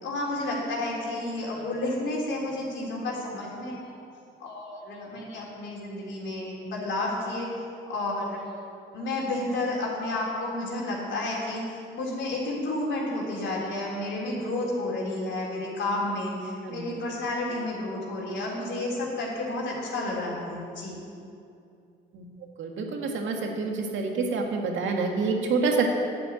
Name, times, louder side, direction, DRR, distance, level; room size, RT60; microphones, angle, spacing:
voice 1, 0.0-3.8 4.4-7.5 7.9-8.6 8.9-11.6 11.9-21.0, left 2 dB, 70° left, -4 dB, 3.6 m, -31 dB
voice 2, 22.6-25.9, right 4 dB, 75° right, 2 dB, 1.9 m, -27 dB
11.0 x 7.0 x 9.0 m, 2.5 s
cardioid pair, 90°, 20 cm